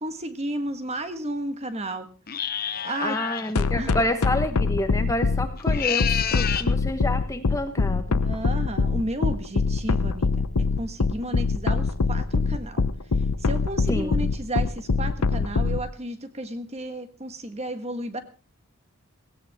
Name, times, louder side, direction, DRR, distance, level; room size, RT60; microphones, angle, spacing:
voice 1, 0.0-2.1 2.8-3.2 3.8-4.0 8.2-10.3 10.8-12.9 13.4-18.2, right 1 dB, 30° right, 8 dB, 1.5 m, -32 dB
sound 1, 2.3-3.5 5.6-6.7, left 8 dB, 40° left, 0.9 m, -28 dB
voice 2, 3.0-8.2 13.9-14.3, left 1 dB, 15° left, 8 dB, 1.1 m, -29 dB
sound 2, 3.6-15.8, left 4 dB, 85° left, 0.7 m, -23 dB
17.0 x 17.0 x 3.6 m, 0.34 s
head